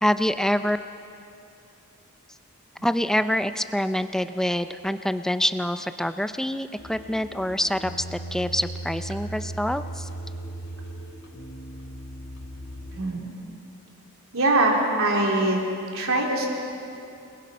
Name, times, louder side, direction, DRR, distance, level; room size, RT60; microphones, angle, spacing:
voice 1, 0.0-0.8 2.8-10.1, equal, ahead, 9 dB, 0.6 m, -26 dB
sound 1, 6.8-13.0, right 1 dB, 65° left, 2.5 m, -37 dB
voice 2, 12.9-13.3 14.3-15.6 15.9-16.5, right 2 dB, 65° right, -1 dB, 4.1 m, -22 dB
28.5 x 21.0 x 5.5 m, 2.7 s
head